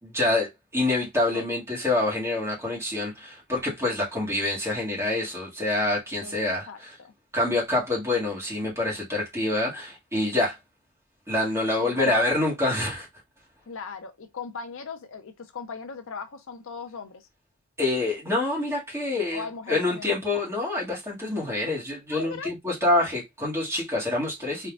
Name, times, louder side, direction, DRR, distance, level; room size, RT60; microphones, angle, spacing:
voice 1, 0.0-6.9 7.3-10.6 11.3-13.1 17.8-24.7, left 2 dB, 10° right, 1.9 m, -26 dB
voice 2, 6.7-7.1 11.8-12.3 13.7-17.3 19.3-20.1 22.1-22.5, left 5 dB, 60° left, 0.6 m, -38 dB
4.4 x 3.6 x 2.4 m
head